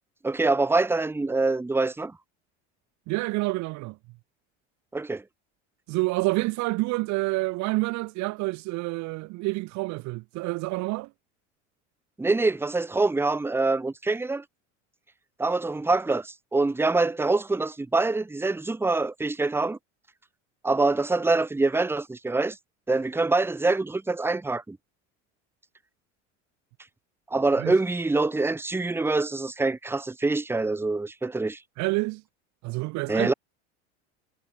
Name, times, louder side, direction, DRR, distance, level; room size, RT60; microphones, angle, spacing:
voice 1, 0.2-2.1 4.9-5.2 12.2-14.4 15.4-19.8 20.6-22.6 22.9-24.8 27.3-31.6 33.1-33.3, right 3 dB, 5° right, 0.9 m, -25 dB
voice 2, 3.1-4.0 5.9-11.1 27.6-27.8 31.8-32.2 32.6-33.3, right 23 dB, 50° right, 0.6 m, -28 dB
supercardioid pair, 105°, 36 cm